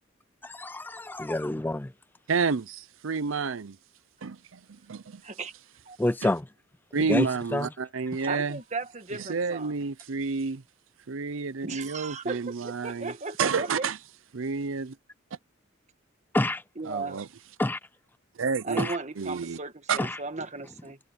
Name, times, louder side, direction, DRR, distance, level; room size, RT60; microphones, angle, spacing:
voice 1, 0.4-1.9 6.0-6.5 7.1-7.7 16.3-16.6 17.6-17.8 18.8-19.0 20.0-20.2, left 1 dB, 10° left, 0.4 m, -28 dB
voice 2, 2.3-3.8 4.2-5.2 6.9-8.6 9.2-10.6 11.1-13.1 13.4-14.0 14.3-15.0 16.9-17.3 18.4-18.9 19.2-19.6 19.9-20.0, right 5 dB, 70° right, 0.6 m, -29 dB
voice 3, 5.2-5.5 5.8-6.0 7.2-7.3 8.3-9.7 11.6-13.9 16.8-17.2 18.6-21.0, right 3 dB, 35° right, 1.6 m, -36 dB
head